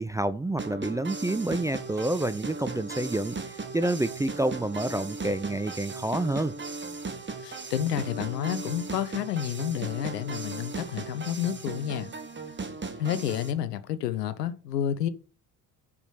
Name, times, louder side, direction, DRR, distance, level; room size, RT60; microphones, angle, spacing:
voice 1, 0.0-6.5, right 1 dB, 10° right, 0.4 m, -28 dB
sound 1, 0.6-13.5, right 3 dB, 25° right, 1.5 m, -37 dB
voice 2, 7.4-12.1 13.0-15.1, left 10 dB, 80° left, 0.8 m, -30 dB
6.9 x 5.1 x 6.6 m
figure-of-eight pair, 50°, 47 cm